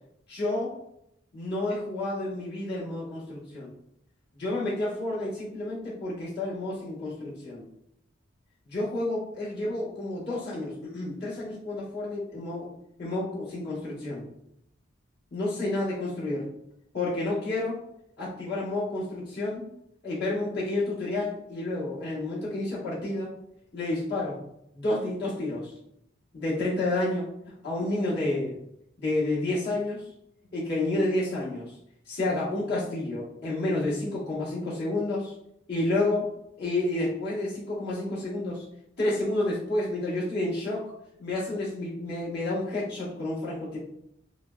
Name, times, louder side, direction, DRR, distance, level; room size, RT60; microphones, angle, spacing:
voice 1, 0.3-0.7 1.3-3.7 4.3-7.6 8.7-12.7 13.0-14.2 15.3-16.5 16.9-17.8 18.2-19.7 20.0-23.4 23.7-24.4 24.7-25.7 26.3-27.3 27.6-28.6 29.0-30.1 30.5-31.8 32.1-35.3 35.7-36.3 36.6-38.6 39.0-40.9 41.2-43.8, left 2 dB, 60° left, -7 dB, 1.3 m, -30 dB
4.3 x 2.0 x 2.3 m, 0.76 s
head